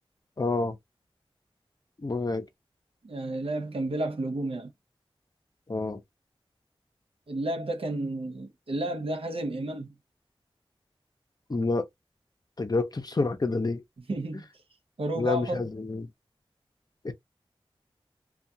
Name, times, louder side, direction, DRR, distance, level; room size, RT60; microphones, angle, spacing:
voice 1, 0.4-0.8 2.0-2.5 5.7-6.0 11.5-11.9 12.6-13.8 15.1-16.1 17.0-17.1, left 3 dB, 40° left, 0.6 m, -28 dB
voice 2, 3.0-4.7 7.3-9.9 14.1-14.4 15.0-15.6, right 1 dB, 70° right, 0.6 m, -31 dB
2.3 x 2.3 x 2.7 m
wide cardioid pair, 60°, 10 cm